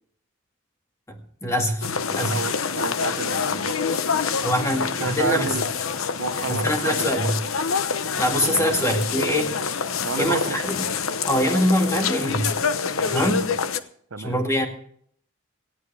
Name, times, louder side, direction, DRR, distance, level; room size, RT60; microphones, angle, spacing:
voice 1, 1.4-2.4 4.4-5.6 6.5-7.3 8.2-9.6 10.2-10.9 11.3-12.5 13.1-13.4 14.2-14.7, equal, 15° left, 3 dB, 2.0 m, -23 dB
sound 1, 1.8-13.8, left 6 dB, 70° left, 0.9 m, -26 dB
voice 2, 2.3-3.8 4.7-5.6 6.2-7.4 8.6-8.7 10.0-10.6 13.0-13.6 14.1-14.3, right 4 dB, 65° right, 9 dB, 0.8 m, -31 dB
19.0 x 14.5 x 3.4 m, 0.62 s
head